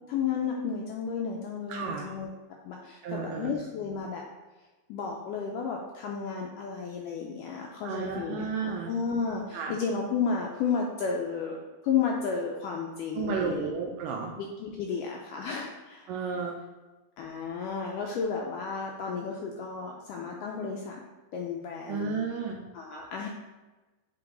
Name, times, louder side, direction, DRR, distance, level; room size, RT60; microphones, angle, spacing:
voice 1, 0.1-2.3 2.6-4.2 4.9-11.6 11.8-13.7 14.3-16.1 17.2-21.0 21.3-22.2 22.7-23.3, left 6 dB, 90° left, -1 dB, 1.9 m, -32 dB
voice 2, 1.7-2.1 3.0-3.6 7.9-8.9 9.5-9.7 13.1-14.3 16.1-16.6 21.9-22.6, right 5 dB, 85° right, 0 dB, 2.0 m, -32 dB
7.6 x 3.6 x 3.8 m, 1.2 s
omnidirectional pair, 4.3 m